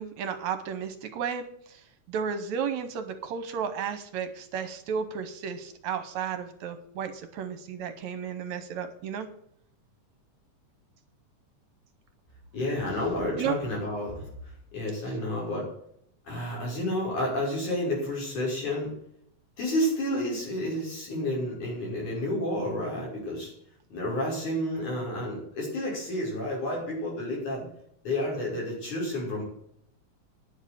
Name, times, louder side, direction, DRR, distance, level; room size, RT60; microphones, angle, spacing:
voice 1, 0.0-1.8 2.1-9.3 13.4-13.6, right 7 dB, 70° right, 10 dB, 2.1 m, -33 dB
voice 2, 12.5-14.2 14.7-15.7 16.3-18.9 19.6-23.5 23.9-27.7 28.0-29.4, left 1 dB, 70° left, -3 dB, 7.1 m, -30 dB
10.5 x 7.3 x 8.3 m, 0.70 s
omnidirectional pair, 3.6 m